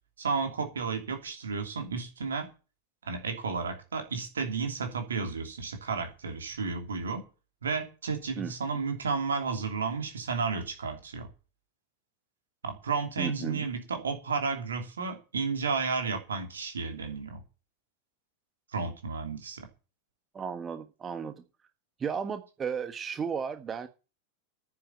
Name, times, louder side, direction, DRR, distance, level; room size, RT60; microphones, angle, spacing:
voice 1, 0.2-2.5 3.0-7.2 7.6-11.3 12.6-17.4 18.7-19.7, right 4 dB, 70° right, 2.9 m, -32 dB
voice 2, 13.2-13.7 20.3-21.4 22.0-23.9, right 6 dB, 20° right, 1.3 m, -34 dB
9.9 x 7.5 x 8.8 m
figure-of-eight pair, 90°, 0 cm